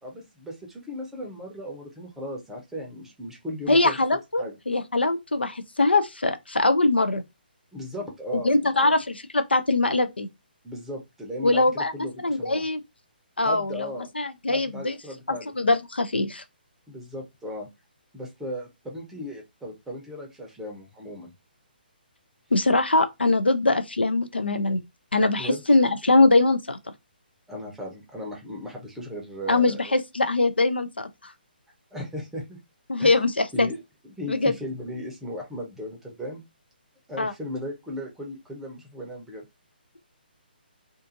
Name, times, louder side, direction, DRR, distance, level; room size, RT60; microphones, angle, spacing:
voice 1, 0.0-4.0 4.4-4.6 7.7-9.0 10.6-12.7 13.4-14.1 14.5-15.5 16.9-17.7 18.1-21.3 25.4-25.6 27.5-29.9 31.9-32.6 33.0-33.2 33.5-33.8 34.0-36.4 37.1-39.5, equal, 5° right, 0.6 m, -36 dB
voice 2, 3.7-7.2 8.3-10.3 11.4-11.9 12.2-12.8 13.4-13.9 14.2-15.0 15.3-16.4 22.5-24.8 25.1-26.8 29.5-31.3 32.9-33.7 34.3-34.5 37.2-37.3, left 2 dB, 85° left, 0.4 m, -22 dB
2.5 x 2.5 x 2.4 m
figure-of-eight pair, 135°, 6 cm